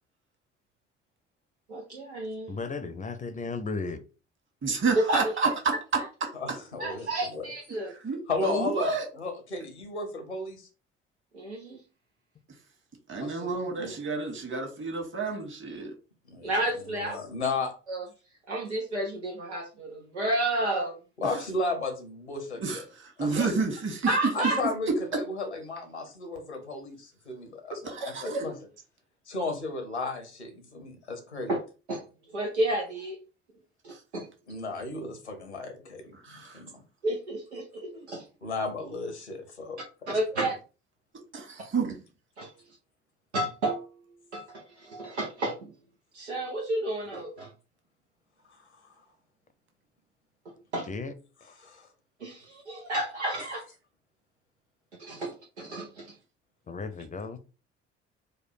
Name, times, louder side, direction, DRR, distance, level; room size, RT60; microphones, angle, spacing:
voice 1, 1.7-2.5 5.1-5.5 6.8-7.9 11.3-11.8 16.4-17.2 17.9-18.0 18.5-21.0 23.3-23.5 24.0-24.6 31.5-31.6 31.9-32.0 32.3-33.2 33.8-34.3 37.0-38.2 40.1-40.6 42.4-42.5 43.3-43.9 44.3-45.7 46.1-47.5 50.5-50.9 52.2-53.6 55.0-55.3 55.6-56.1, right 1 dB, 85° right, 0.7 m, -31 dB
voice 2, 2.5-4.0 50.9-51.1 51.4-51.5 56.7-57.4, left 4 dB, 25° left, 0.7 m, -35 dB
voice 3, 4.6-5.5 6.2-6.3 8.0-9.0 13.1-15.9 21.2-21.4 22.6-24.1 24.4-24.5 27.8-28.5 33.9-34.0 36.1-36.6 41.3-42.0, right 4 dB, 35° right, 1.6 m, -30 dB
voice 4, 6.3-7.5 8.3-10.7 13.2-13.9 16.3-16.5 16.9-17.7 21.2-22.8 23.2-23.4 24.3-28.6 29.3-31.5 34.5-36.7 38.4-39.8 40.1-40.4 51.6-51.9, left 3 dB, 85° left, 1.1 m, -34 dB
4.6 x 2.2 x 4.7 m
figure-of-eight pair, 50°, 33 cm